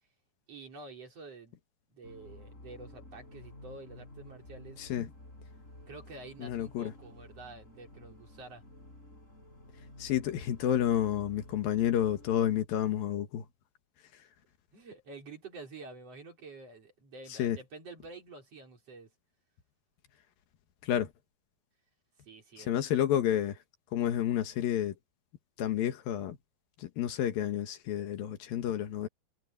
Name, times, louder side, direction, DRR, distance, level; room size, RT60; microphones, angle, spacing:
voice 1, 0.5-1.6 1.9-4.8 5.9-8.6 14.7-19.1 22.2-22.7, right 3 dB, 40° right, 5.0 m, -48 dB
sound 1, 2.0-12.6, left 1 dB, 20° left, 5.8 m, -52 dB
voice 2, 4.8-5.1 6.4-6.9 10.0-13.5 17.3-17.6 20.8-21.1 22.6-23.6 23.9-25.0 25.6-26.4 26.8-29.1, left 11 dB, 75° left, 3.2 m, -30 dB
omnidirectional pair, 4.3 m